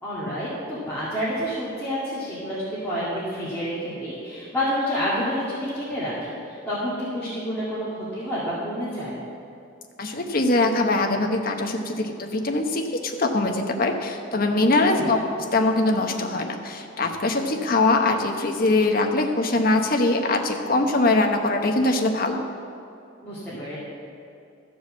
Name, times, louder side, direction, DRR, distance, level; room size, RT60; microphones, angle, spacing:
voice 1, 0.0-9.1 14.8-15.2 23.2-23.8, equal, 10° left, -11 dB, 2.1 m, -29 dB
voice 2, 10.0-15.2 15.5-22.4, left 2 dB, 45° left, 3 dB, 0.9 m, -22 dB
13.0 x 4.7 x 7.4 m, 2.6 s
head